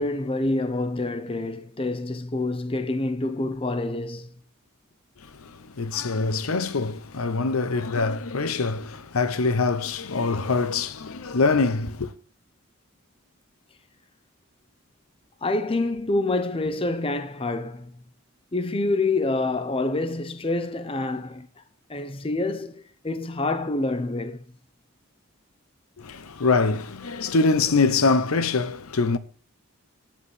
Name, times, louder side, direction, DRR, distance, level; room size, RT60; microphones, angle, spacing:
voice 1, 0.0-4.3 15.4-18.0 18.5-21.5 21.9-24.4, left 2 dB, 25° left, 0.7 m, -27 dB
voice 2, 5.3-12.1 26.0-29.2, left 4 dB, 90° left, 0.8 m, -24 dB
10.5 x 8.2 x 4.8 m
head